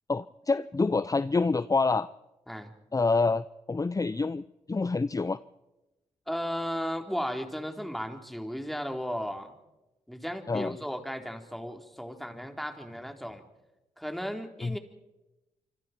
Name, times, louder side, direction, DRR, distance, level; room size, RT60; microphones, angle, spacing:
voice 1, 0.1-2.1 2.9-5.4 10.5-10.8 14.6-14.8, left 3 dB, 25° left, 16 dB, 0.7 m, -27 dB
voice 2, 6.3-9.6 10.1-13.4 14.0-14.8, equal, ahead, 4 dB, 4.1 m, -35 dB
27.5 x 25.5 x 4.6 m, 1.0 s
supercardioid pair, 45°, 13 cm